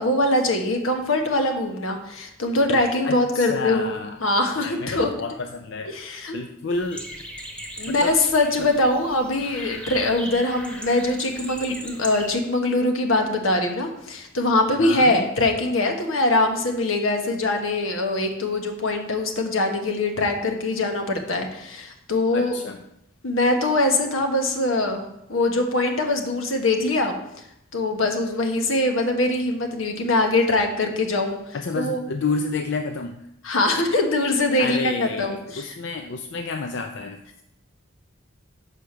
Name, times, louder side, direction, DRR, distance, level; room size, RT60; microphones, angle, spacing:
voice 1, 0.0-3.9 4.2-5.1 5.9-6.4 7.8-22.5 23.2-25.0 25.3-27.2 27.7-31.4 31.7-32.0 33.4-35.8, left 2 dB, 85° left, 4 dB, 1.1 m, -22 dB
voice 2, 3.0-4.2 4.5-5.9 6.3-7.1 7.4-7.5 7.9-8.1 8.6-8.7 14.8-15.2 22.3-22.8 31.5-33.3 34.4-37.4, left 3 dB, 60° left, 5 dB, 0.5 m, -30 dB
sound 1, 6.7-12.4, equal, 5° left, 0.9 m, -38 dB
5.8 x 4.9 x 6.6 m, 0.81 s
head